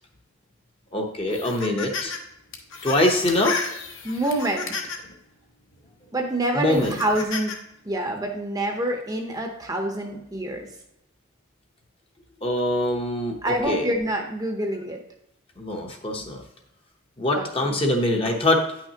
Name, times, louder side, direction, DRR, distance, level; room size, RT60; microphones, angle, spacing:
voice 1, 0.9-2.2 2.8-3.7 6.5-7.0 12.4-13.9 15.6-16.4 17.2-18.6, left 1 dB, 25° left, 2 dB, 0.8 m, -23 dB
sound 1, 1.3-2.2 2.5-5.1 5.7-5.9 6.7-7.6, left 5 dB, 60° left, 1.1 m, -33 dB
voice 2, 4.0-4.7 6.1-7.5 7.8-10.7 13.4-15.0 17.3-17.8, right 1 dB, 15° right, 2 dB, 0.8 m, -27 dB
9.5 x 5.8 x 2.8 m, 0.82 s
head